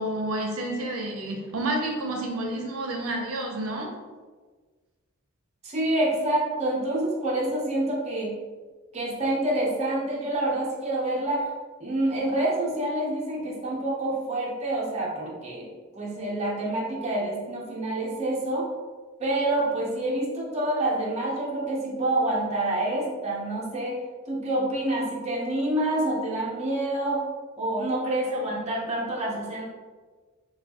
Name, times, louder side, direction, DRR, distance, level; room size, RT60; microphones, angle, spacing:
voice 1, 0.0-3.9, right 1 dB, 75° right, 1 dB, 0.6 m, -29 dB
voice 2, 5.6-8.4 8.9-11.5 11.8-18.7 19.2-24.0 24.3-27.2 27.6-29.7, right 1 dB, 30° right, -4 dB, 0.6 m, -27 dB
4.1 x 2.3 x 2.8 m, 1.4 s
head